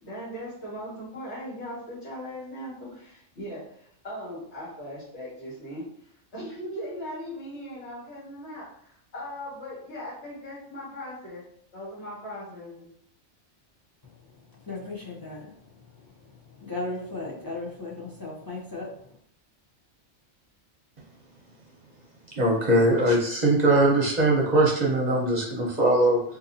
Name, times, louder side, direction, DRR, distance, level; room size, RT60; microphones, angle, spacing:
voice 1, 0.0-5.8 6.3-11.4 11.7-12.9, equal, 70° left, -11 dB, 2.0 m, -39 dB
voice 2, 14.0-19.2, left 2 dB, 30° left, -4 dB, 0.4 m, -37 dB
voice 3, 22.4-26.2, right 1 dB, 45° right, -2 dB, 0.7 m, -21 dB
3.9 x 2.6 x 2.7 m, 0.65 s
omnidirectional pair, 1.2 m